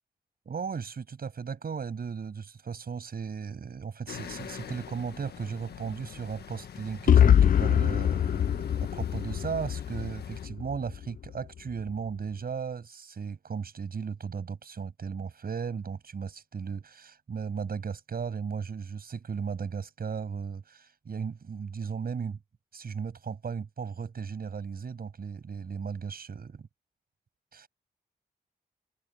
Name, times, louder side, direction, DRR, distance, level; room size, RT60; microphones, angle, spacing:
voice 1, 0.5-22.4 22.7-26.7 27.5-27.7, right 6 dB, 65° right, 6.9 m, -36 dB
sound 1, 4.1-10.5, left 8 dB, 80° left, 1.5 m, -45 dB
sound 2, 7.1-11.0, left 9 dB, 60° left, 0.4 m, -23 dB
cardioid pair, 50°, 16 cm